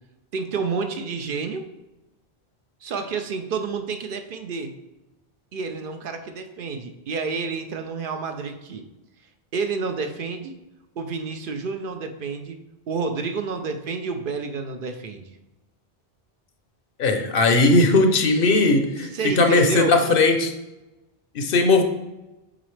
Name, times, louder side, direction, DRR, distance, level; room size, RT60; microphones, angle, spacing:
voice 1, 0.3-1.6 2.8-4.7 5.5-8.8 9.5-10.5 11.0-12.6 12.9-15.2 19.1-19.9, right 4 dB, 65° right, 7 dB, 0.7 m, -29 dB
voice 2, 17.0-20.5 21.3-21.8, left 3 dB, 65° left, 5 dB, 0.8 m, -18 dB
7.6 x 3.9 x 3.2 m, 1.0 s
omnidirectional pair, 1.0 m